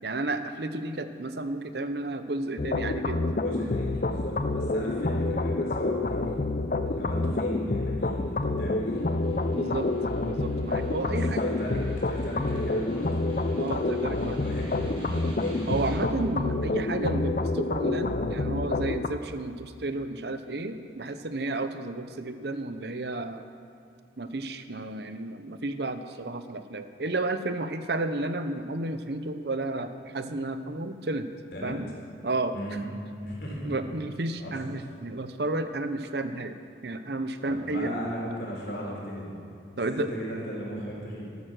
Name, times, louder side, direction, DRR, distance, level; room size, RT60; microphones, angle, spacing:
voice 1, 0.0-3.3 3.6-3.7 9.5-9.9 10.2-11.4 13.6-14.4 15.7-23.4 24.2-31.3 31.6-31.9 32.2-32.5 33.6-36.6 36.8-37.9 39.8-40.1, right 2 dB, 65° right, 10 dB, 0.8 m, -32 dB
sound 1, 2.6-19.1, left 2 dB, 45° left, 0.5 m, -28 dB
voice 2, 3.3-6.4 6.8-9.0 11.0-13.1 14.3-15.0 15.3-15.7 31.5-31.8 32.5-32.9 33.2-33.8 34.4-34.5 37.5-39.4 39.7-41.3, equal, 65° left, -3 dB, 4.0 m, -36 dB
Snare drum, 8.8-16.3, right 1 dB, 30° right, 3.7 m, -43 dB
13.0 x 12.5 x 6.3 m, 2.5 s
head